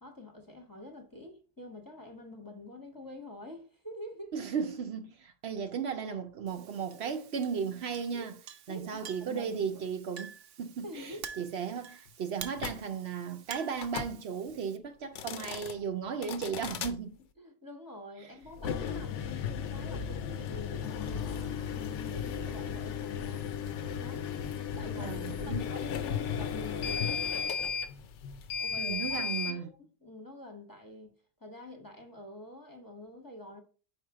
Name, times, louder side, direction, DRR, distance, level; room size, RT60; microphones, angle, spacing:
voice 1, 0.0-4.4 8.1-8.3 8.7-9.8 10.8-11.2 17.4-23.5 24.0-24.3 24.8-25.2 25.5-27.4 28.6-31.1 31.4-33.6, left 2 dB, 20° left, 0.9 m, -46 dB
voice 2, 4.3-8.3 8.7-17.2 24.9-25.6 28.8-29.7, right 6 dB, 65° right, 0.8 m, -35 dB
Chink clink, 6.5-14.8, right 7 dB, 85° right, 1.0 m, -49 dB
sound 1, 12.6-12.8 13.8-14.1 15.0-15.7 16.2-16.9 18.5-29.6, left 7 dB, 80° left, 0.9 m, -35 dB
4.9 x 4.4 x 4.7 m
omnidirectional pair, 1.2 m